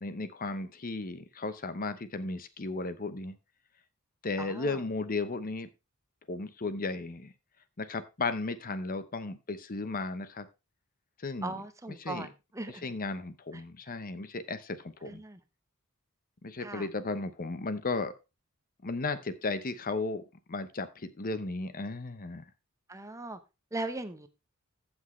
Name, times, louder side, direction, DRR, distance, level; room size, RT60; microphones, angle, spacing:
voice 1, 0.0-3.3 4.2-5.7 6.3-7.3 7.8-10.5 11.2-12.3 12.7-15.2 16.4-18.1 18.8-20.2 20.5-22.4, left 3 dB, 40° left, 12 dB, 0.8 m, -35 dB
voice 2, 4.4-4.7 11.4-12.3 12.5-12.9 15.1-15.4 16.6-16.9 22.9-23.4 23.7-24.3, right 2 dB, 15° right, 9 dB, 0.9 m, -38 dB
15.0 x 6.2 x 3.2 m, 0.27 s
head